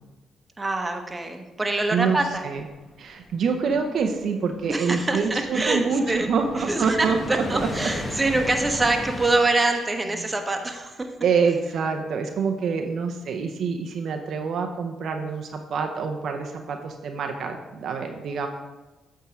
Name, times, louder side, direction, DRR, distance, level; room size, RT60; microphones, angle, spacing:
voice 1, 0.6-2.4 4.7-6.3 6.7-11.1, right 2 dB, 20° right, 4 dB, 1.1 m, -25 dB
sound 1, 2.3-9.3, left 2 dB, 30° left, 1.0 m, -36 dB
voice 2, 3.0-7.4 9.6-9.7 10.2-10.3 11.2-18.5, right 5 dB, 65° right, 4 dB, 0.7 m, -26 dB
8.3 x 3.7 x 5.9 m, 1.1 s
supercardioid pair, 70°, 0 cm